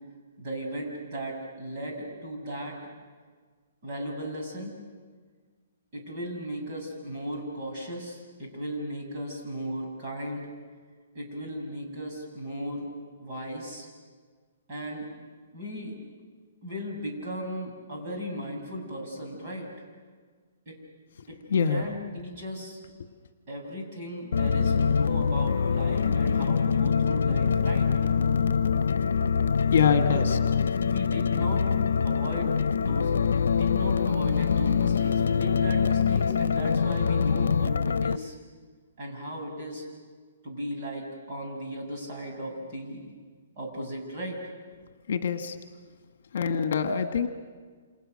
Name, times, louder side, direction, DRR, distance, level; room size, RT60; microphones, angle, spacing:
voice 1, 0.4-2.8 3.8-4.8 5.9-10.5 11.1-12.9 13.2-13.9 14.7-15.1 15.5-16.0 16.6-19.7 20.6-20.8 21.3-21.4 21.7-22.8 23.5-27.9 30.1-30.2 30.8-31.7 32.0-38.3 39.0-39.8 40.4-43.1 43.6-44.4, equal, 30° right, -1 dB, 6.8 m, -36 dB
voice 2, 21.5-21.8 29.7-30.4 45.1-45.6 46.3-47.3, left 6 dB, 55° left, 7 dB, 1.7 m, -24 dB
sound 1, 24.3-38.2, left 6 dB, 85° left, 0.8 m, -24 dB
29.0 x 27.5 x 6.6 m, 1.5 s
hypercardioid pair, 175°, 0 cm